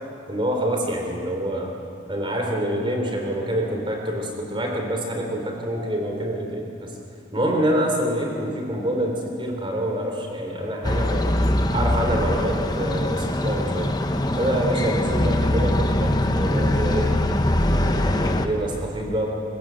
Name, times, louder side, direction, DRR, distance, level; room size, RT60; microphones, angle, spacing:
voice 1, 0.3-1.7 2.1-6.9 7.3-11.3 11.7-13.9 14.4-17.1 17.6-19.3, right 1 dB, 25° right, 1 dB, 3.7 m, -26 dB
sound 1, 10.8-18.5, left 1 dB, 20° left, 0.9 m, -22 dB
23.5 x 19.5 x 7.7 m, 2.9 s
head